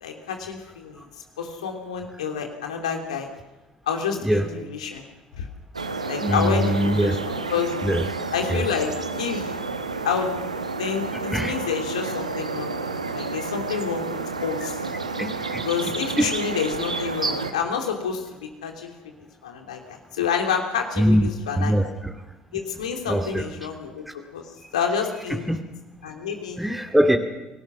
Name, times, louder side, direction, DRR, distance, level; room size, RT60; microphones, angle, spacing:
voice 1, 0.0-1.1 1.4-3.3 3.8-5.0 5.3-5.5 6.1-7.8 8.3-9.6 10.0-10.3 10.8-12.7 13.0-14.1 14.4-14.8 15.6-21.9 22.5-24.0 24.3-25.5 26.0-26.6, left 7 dB, 80° left, 3 dB, 3.0 m, -29 dB
sound 1, 5.7-17.5, right 3 dB, 90° right, 1.1 m, -30 dB
voice 2, 6.2-7.2 7.8-8.0 8.5-8.6 11.3-11.5 15.2-15.6 16.2-16.3 21.0-21.3 21.5-22.1 23.1-23.4 24.6-24.7 25.5-25.6 26.6-27.2, equal, 5° right, 4 dB, 2.4 m, -22 dB
29.0 x 18.0 x 6.2 m, 1.1 s
figure-of-eight pair, 50°, 4 cm